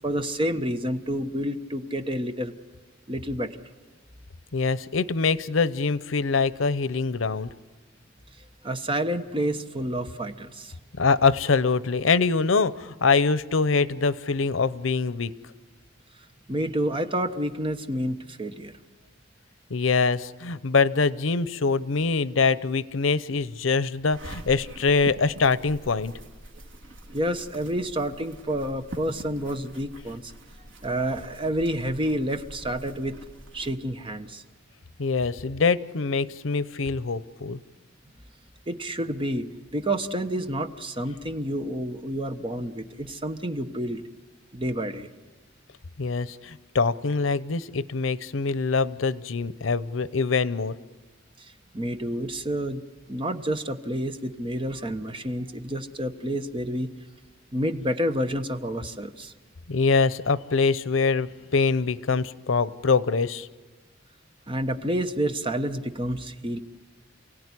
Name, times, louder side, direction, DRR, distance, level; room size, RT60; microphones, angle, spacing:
voice 1, 0.0-2.5 3.1-3.6 8.6-10.7 16.5-18.8 27.1-30.3 30.8-33.2 33.5-34.4 38.7-44.0 44.5-45.1 51.4-52.8 53.1-56.9 57.5-59.3 64.5-66.6, right 1 dB, 25° right, 7 dB, 1.1 m, -29 dB
voice 2, 4.5-7.5 10.9-15.3 19.7-26.1 35.0-37.6 46.0-50.8 59.7-63.5, left 4 dB, 85° left, 15 dB, 0.7 m, -24 dB
sound 1, 24.1-33.7, right 1 dB, 70° right, 2.5 m, -44 dB
29.0 x 17.0 x 9.8 m, 1.4 s
head